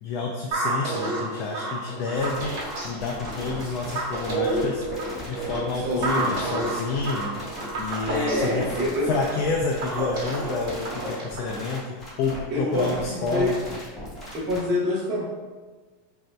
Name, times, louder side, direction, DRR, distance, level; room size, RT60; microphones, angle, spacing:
voice 1, 0.0-4.8 5.2-7.4 7.8-8.7 9.0-13.6, left 3 dB, 45° left, 0 dB, 0.4 m, -29 dB
sound 1, 0.5-11.5, right 2 dB, 60° right, 1.1 m, -30 dB
sound 2, 2.1-14.6, equal, 10° left, 1.2 m, -38 dB
voice 2, 5.7-6.4 8.1-9.1 12.5-13.6 14.3-15.3, left 1 dB, 30° right, -8 dB, 0.7 m, -26 dB
4.1 x 2.6 x 2.2 m, 1.3 s
supercardioid pair, 140°, 0 cm